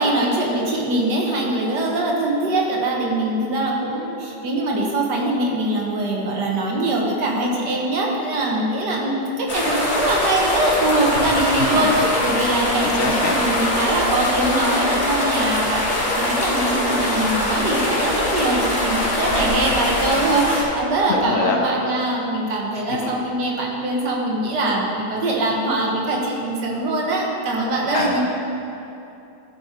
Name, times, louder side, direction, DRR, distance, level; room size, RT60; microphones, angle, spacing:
voice 1, 0.0-28.2, right 2 dB, 80° right, -2 dB, 1.8 m, -22 dB
sound 1, 9.5-20.6, left 1 dB, 45° left, 1.9 m, -22 dB
voice 2, 11.6-12.0 12.9-13.4 21.1-21.6 22.7-23.0 27.9-28.2, left 4 dB, 60° left, 1 dB, 1.0 m, -24 dB
12.5 x 5.4 x 4.3 m, 2.8 s
omnidirectional pair, 1.8 m